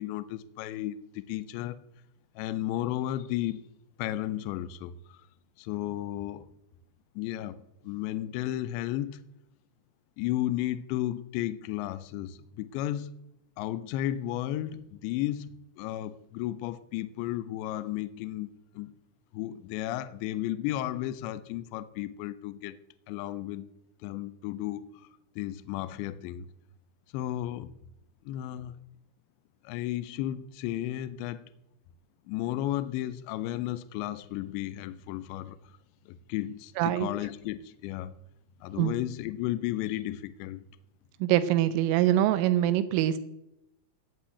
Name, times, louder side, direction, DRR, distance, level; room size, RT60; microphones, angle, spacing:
voice 1, 0.0-1.8 2.4-3.7 4.0-5.2 5.6-6.5 7.2-9.2 10.2-13.1 13.6-15.5 15.8-19.0 19.3-22.8 23.1-23.7 24.0-25.1 25.4-26.5 27.1-27.7 28.3-28.8 29.6-31.5 32.3-35.6 36.1-38.1 38.6-40.6, left 13 dB, 80° left, 2.7 m, -33 dB
voice 2, 36.8-37.1 38.8-38.9 41.2-43.2, right 12 dB, 85° right, 3.4 m, -24 dB
17.0 x 5.7 x 8.2 m
omnidirectional pair, 5.7 m